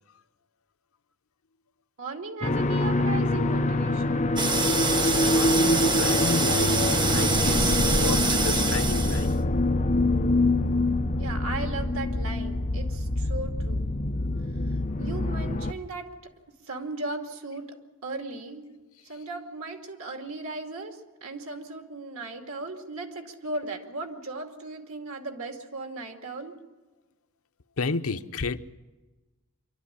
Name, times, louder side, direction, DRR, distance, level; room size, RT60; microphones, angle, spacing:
voice 1, 2.0-4.4 11.2-13.9 14.6-18.7 19.1-26.6, right 3 dB, 90° right, 2.4 m, -37 dB
sound 1, 2.4-15.7, left 2 dB, 35° left, 0.8 m, -25 dB
sound 2, 4.4-9.4, right 3 dB, 20° right, 1.0 m, -26 dB
voice 2, 5.0-6.8 7.1-9.3 27.8-28.6, left 4 dB, 85° left, 0.7 m, -31 dB
25.0 x 12.5 x 9.9 m
head